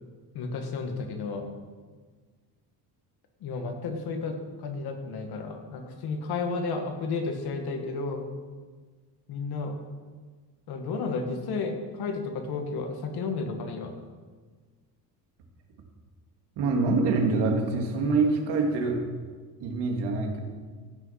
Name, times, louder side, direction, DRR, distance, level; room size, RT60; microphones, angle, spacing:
voice 1, 0.3-1.5 3.4-8.2 9.3-9.7 10.7-13.9, left 4 dB, 60° left, 4 dB, 1.8 m, -32 dB
voice 2, 16.6-19.0 19.6-20.4, right 3 dB, 70° right, 2 dB, 2.2 m, -25 dB
16.0 x 6.4 x 5.7 m, 1.5 s
cardioid pair, 135°, 42 cm